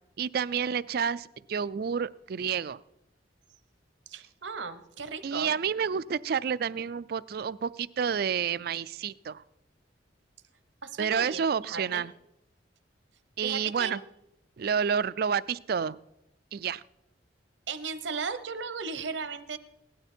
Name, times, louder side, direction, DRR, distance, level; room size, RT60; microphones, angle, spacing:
voice 1, 0.2-2.8 5.2-9.4 11.0-12.1 13.4-14.0 14.6-16.0 16.5-16.8, right 7 dB, 55° right, 18 dB, 0.4 m, -29 dB
voice 2, 4.1-5.5 10.8-12.0 13.4-14.0 17.7-19.6, right 5 dB, 80° right, 11 dB, 1.0 m, -36 dB
17.0 x 11.5 x 4.4 m, 0.87 s
head